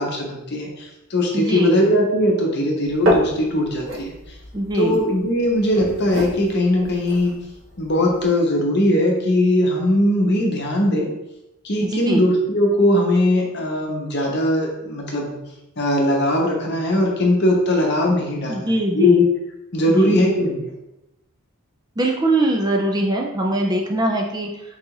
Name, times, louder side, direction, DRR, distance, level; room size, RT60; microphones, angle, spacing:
voice 1, 0.0-4.1 4.7-7.3 7.8-11.1 11.6-15.4 15.8-19.3 19.7-20.7, left 1 dB, 50° left, 0 dB, 0.8 m, -20 dB
voice 2, 1.3-1.8 4.5-5.0 11.8-12.3 18.5-19.3 19.9-20.2 22.0-24.6, right 1 dB, 20° right, 0 dB, 0.3 m, -22 dB
sound 1, 2.8-8.2, right 1 dB, 60° right, 0.9 m, -28 dB
4.0 x 2.5 x 4.6 m, 0.91 s
head